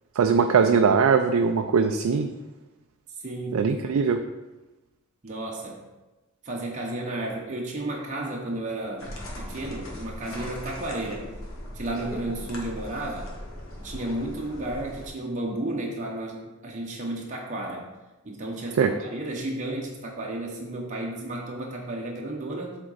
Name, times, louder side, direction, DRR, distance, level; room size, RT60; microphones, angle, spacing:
voice 1, 0.2-2.3 3.5-4.2 18.8-18.9, right 5 dB, 80° right, 6 dB, 0.4 m, -21 dB
voice 2, 3.2-3.7 5.2-5.8 6.4-9.1 9.4-11.3 11.7-13.3 13.8-17.9 18.2-22.8, right 1 dB, 35° right, -3 dB, 0.8 m, -33 dB
sound 1, 9.0-15.1, left 1 dB, 70° left, 1.3 m, -39 dB
7.6 x 3.7 x 3.9 m, 1.1 s
head